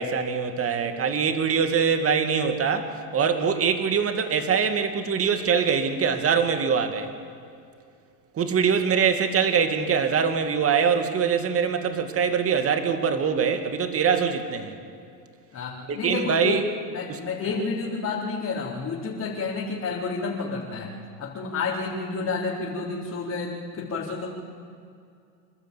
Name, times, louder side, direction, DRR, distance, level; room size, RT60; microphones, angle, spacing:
voice 1, 0.0-7.1 8.3-14.8 15.9-16.6 17.1-17.2, right 6 dB, 30° right, 7 dB, 2.2 m, -23 dB
voice 2, 15.5-16.6 16.9-20.9 21.2-24.3, left 4 dB, 35° left, -5 dB, 4.0 m, -30 dB
27.5 x 12.5 x 8.5 m, 2.4 s
hypercardioid pair, 95°, 48 cm